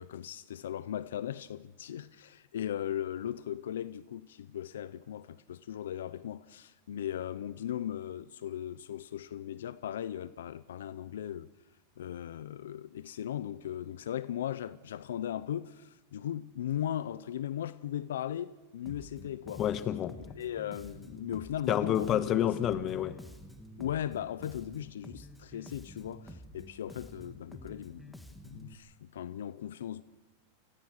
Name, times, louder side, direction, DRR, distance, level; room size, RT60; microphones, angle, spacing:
voice 1, 0.0-11.5 12.0-19.6 20.3-22.6 23.8-28.2 28.4-30.0, left 10 dB, 85° left, 0.7 m, -38 dB
Bass guitar, 18.9-28.7, equal, 5° left, 2.0 m, -50 dB
voice 2, 19.6-20.2 21.7-23.2, left 10 dB, 35° left, 1.4 m, -29 dB
28.0 x 20.0 x 6.5 m
hypercardioid pair, 125°, 0 cm